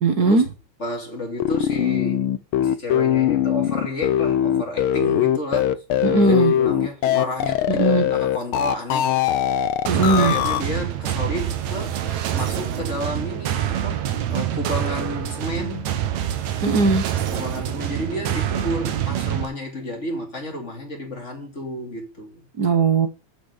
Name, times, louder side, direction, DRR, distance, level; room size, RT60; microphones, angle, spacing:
voice 1, 0.0-0.4 6.0-6.5 7.7-8.1 9.9-10.3 16.6-17.0 22.6-23.1, right 4 dB, 45° right, 1.4 m, -18 dB
voice 2, 0.8-2.3 2.6-5.8 6.1-9.2 9.9-12.0 12.3-16.0 17.3-22.4, left 1 dB, 25° left, 3.0 m, -31 dB
sound 1, 1.4-10.6, left 11 dB, 80° left, 1.2 m, -21 dB
sound 2, 9.9-19.5, right 11 dB, 75° right, 2.5 m, -26 dB
8.7 x 6.2 x 6.6 m
omnidirectional pair, 3.3 m